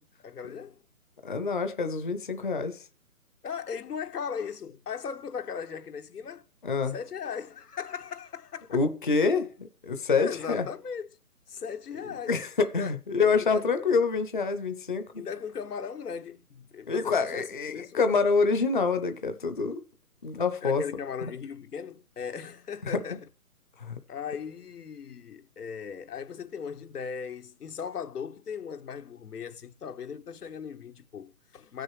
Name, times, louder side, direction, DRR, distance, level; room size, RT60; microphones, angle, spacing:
voice 1, 0.2-0.8 3.4-6.4 6.9-8.8 10.2-11.1 11.5-12.3 12.8-13.0 13.5-13.6 15.2-18.0 20.6-23.2 24.1-31.8, left 6 dB, 85° left, 1.1 m, -38 dB
voice 2, 1.2-2.9 6.6-7.0 8.7-10.7 12.3-15.2 16.9-19.8 20.2-20.8 21.2-21.3 22.8-23.2 23.8-24.0, left 4 dB, 35° left, 0.6 m, -27 dB
14.5 x 6.5 x 4.7 m
hypercardioid pair, 170°, 45 cm